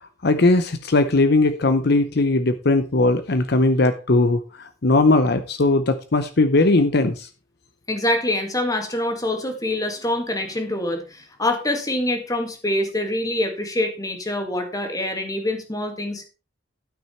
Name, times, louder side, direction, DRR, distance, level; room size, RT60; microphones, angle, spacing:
voice 1, 0.2-7.3, left 2 dB, 60° left, 0.7 m, -19 dB
voice 2, 7.9-16.3, left 1 dB, 20° left, 2.0 m, -25 dB
12.5 x 6.1 x 4.3 m
head